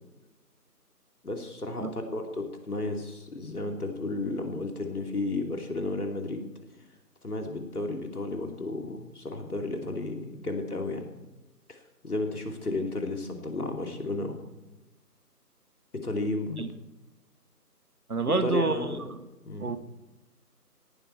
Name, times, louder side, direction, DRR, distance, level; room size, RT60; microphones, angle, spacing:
voice 1, 1.2-6.5 7.2-11.0 11.7-11.8 12.0-14.4 15.9-16.6 18.3-19.0 19.4-19.8, left 2 dB, 65° left, 3 dB, 2.9 m, -33 dB
voice 2, 18.1-19.0 19.6-19.8, right 3 dB, 65° right, 11 dB, 1.4 m, -27 dB
17.5 x 11.5 x 4.5 m, 1.0 s
figure-of-eight pair, 170°, 48 cm